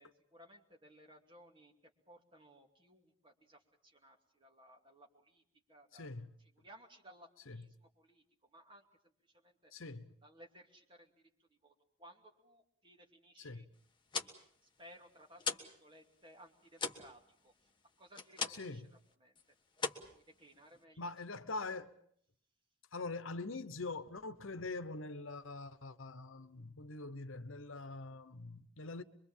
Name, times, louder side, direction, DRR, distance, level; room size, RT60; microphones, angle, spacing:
voice 1, 0.0-1.7 2.1-5.4 5.7-6.1 6.5-9.7 10.2-11.1 11.4-13.7 14.2-14.3 14.8-17.7 18.0-18.8 19.2-19.3 20.1-21.0, equal, 25° right, 2.6 m, -60 dB
voice 2, 5.9-6.3 7.5-7.6 9.7-10.1 13.4-13.7 18.5-18.9 21.0-21.9 22.9-29.0, left 3 dB, 70° left, 1.1 m, -44 dB
sound 1, 13.9-15.8 16.1-18.8 19.1-19.4 19.7-20.8, left 5 dB, 20° left, 1.4 m, -41 dB
24.5 x 23.5 x 7.4 m
head